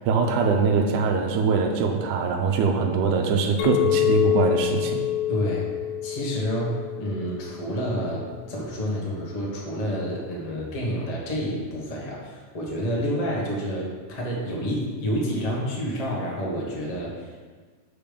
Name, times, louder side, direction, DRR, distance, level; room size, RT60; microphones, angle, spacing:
voice 1, 0.1-5.1, right 5 dB, 90° right, 2 dB, 2.2 m, -23 dB
Chink clink, 3.6-8.1, left 12 dB, 85° left, 2.0 m, -26 dB
voice 2, 5.3-5.7 6.0-17.3, equal, 50° left, -3 dB, 0.4 m, -29 dB
6.9 x 5.6 x 5.1 m, 1.5 s
omnidirectional pair, 3.4 m